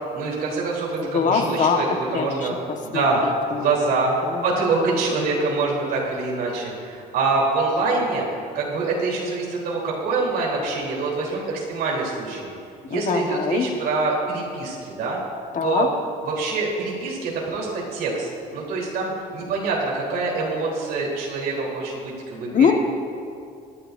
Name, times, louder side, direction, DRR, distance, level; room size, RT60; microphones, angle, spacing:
voice 1, 0.1-2.5 2.8-3.2 3.6-4.1 4.4-8.2 8.5-12.5 12.9-15.2 15.6-15.9 16.2-22.7, right 3 dB, 70° right, -4 dB, 3.4 m, -25 dB
voice 2, 1.0-1.8 2.1-2.5 2.9-4.4 4.9-5.0 12.9-13.7 15.5-15.9 22.5-22.7, left 6 dB, 50° left, 4 dB, 1.3 m, -23 dB
23.5 x 11.0 x 2.6 m, 2.4 s
cardioid pair, 110°, 17 cm